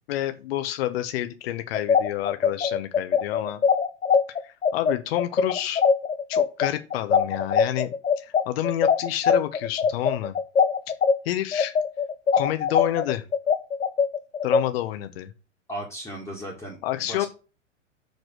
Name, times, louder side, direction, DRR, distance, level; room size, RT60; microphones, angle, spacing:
voice 1, 0.1-3.6 4.3-5.8 6.3-10.4 11.2-11.7 12.3-13.2 14.4-15.3 16.8-17.2, left 13 dB, 50° left, 9 dB, 1.1 m, -29 dB
sound 1, 1.7-11.1 11.5-14.6, left 6 dB, 85° left, 1.1 m, -21 dB
voice 2, 15.7-17.3, right 1 dB, 5° left, -2 dB, 2.0 m, -36 dB
5.9 x 5.4 x 6.1 m, 0.32 s
figure-of-eight pair, 105°, 37 cm